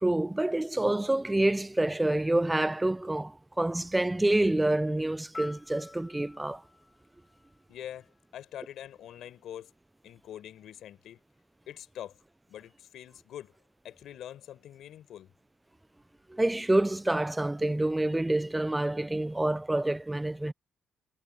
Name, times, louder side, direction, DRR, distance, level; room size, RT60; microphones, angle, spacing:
voice 1, 0.0-6.6 16.3-20.5, right 1 dB, 10° right, 0.5 m, -27 dB
Piano, 5.3-8.3 16.4-16.6, left 3 dB, 25° left, 4.8 m, -49 dB
voice 2, 7.7-9.7 10.0-11.2 11.7-12.2 12.5-13.5 13.8-15.3, left 11 dB, 75° left, 4.7 m, -44 dB
cardioid pair, 90°, 0 cm